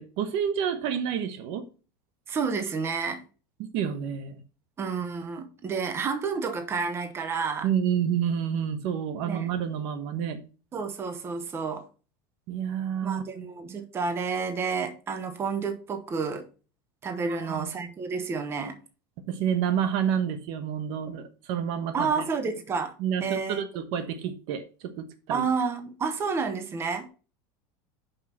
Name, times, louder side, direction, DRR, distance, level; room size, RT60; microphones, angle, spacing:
voice 1, 0.0-1.7 3.7-4.4 7.6-10.4 12.5-13.5 17.3-17.7 19.3-22.2 23.0-25.4, right 8 dB, 60° right, 1.1 m, -29 dB
voice 2, 2.3-3.2 4.8-7.7 9.3-9.5 10.7-11.8 13.0-16.5 17.0-18.8 21.9-22.9 23.2-23.6 25.3-27.1, right 5 dB, 25° right, 0.9 m, -30 dB
5.6 x 5.5 x 5.8 m
supercardioid pair, 135°, 11 cm